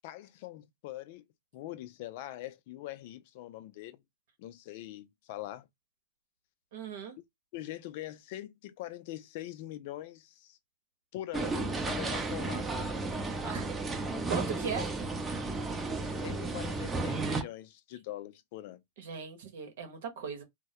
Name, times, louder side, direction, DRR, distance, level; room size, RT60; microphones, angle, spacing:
voice 1, 0.0-1.2 1.5-4.0 4.4-5.7 7.5-10.6 11.1-12.7 16.0-18.8, left 14 dB, 55° left, 0.4 m, -43 dB
voice 2, 6.7-7.1 13.4-13.7 14.3-14.9 19.0-20.4, right 6 dB, 70° right, 0.9 m, -38 dB
sound 1, 11.3-17.4, right 3 dB, 15° right, 0.5 m, -33 dB
2.1 x 2.1 x 2.8 m
hypercardioid pair, 110°, 0 cm